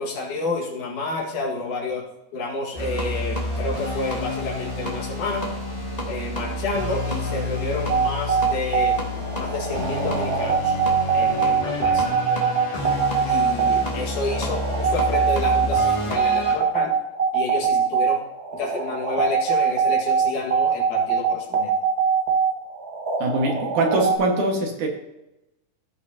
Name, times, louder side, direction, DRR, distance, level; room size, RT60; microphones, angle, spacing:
voice 1, 0.0-2.0 2.3-5.5 6.1-10.8 11.1-12.1 13.3-17.0 17.3-18.2 18.5-21.7, left 3 dB, 70° left, -1 dB, 3.3 m, -30 dB
sound 1, 2.7-16.5, left 1 dB, 15° left, 1.5 m, -29 dB
sound 2, 7.9-24.2, right 6 dB, 55° right, 1.0 m, -22 dB
voice 2, 23.2-24.9, right 2 dB, 70° right, 1 dB, 3.1 m, -22 dB
16.0 x 6.1 x 2.8 m, 0.92 s
omnidirectional pair, 3.7 m